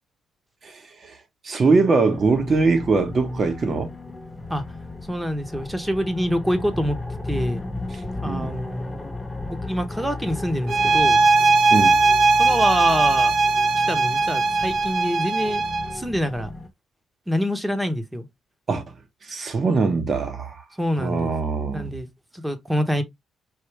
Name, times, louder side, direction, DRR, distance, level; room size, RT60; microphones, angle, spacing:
voice 1, 0.6-1.2 1.4-3.9 8.2-8.5 11.7-12.0 18.7-18.9 19.3-20.6 21.0-21.9, right 4 dB, 40° right, 1.2 m, -22 dB
sound 1, 2.0-16.7, left 2 dB, 10° left, 1.0 m, -35 dB
voice 2, 5.0-7.0 7.3-7.6 8.2-9.1 9.6-11.2 12.3-13.3 13.9-15.6 15.9-16.5 17.3-18.3 20.8-21.3 21.7-22.1 22.3-23.0, equal, 10° right, 1.0 m, -26 dB
sound 2, 10.7-16.0, right 3 dB, 60° right, 0.6 m, -19 dB
4.8 x 2.7 x 3.2 m
cardioid pair, 90°, 0 cm